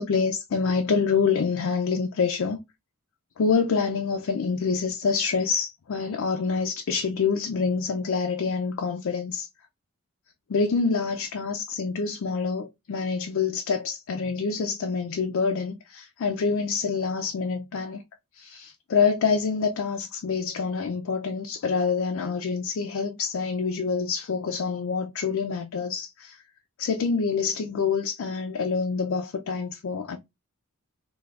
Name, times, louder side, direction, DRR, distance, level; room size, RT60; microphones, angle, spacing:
voice 1, 0.0-2.6 3.4-9.5 10.5-18.0 18.3-26.4 26.8-30.2, left 5 dB, 60° left, 0.4 m, -26 dB
3.3 x 2.3 x 2.3 m
head